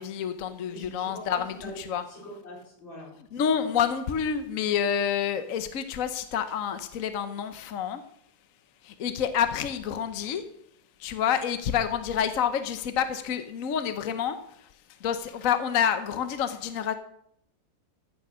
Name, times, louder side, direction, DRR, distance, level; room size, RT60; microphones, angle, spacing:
voice 1, 0.0-2.1 3.3-8.0 8.8-10.4 11.0-14.7 15.0-16.9, left 8 dB, 55° left, 10 dB, 1.0 m, -28 dB
voice 2, 0.7-3.6, equal, 75° left, -3 dB, 5.1 m, -43 dB
15.0 x 6.9 x 6.2 m, 0.70 s
omnidirectional pair, 2.1 m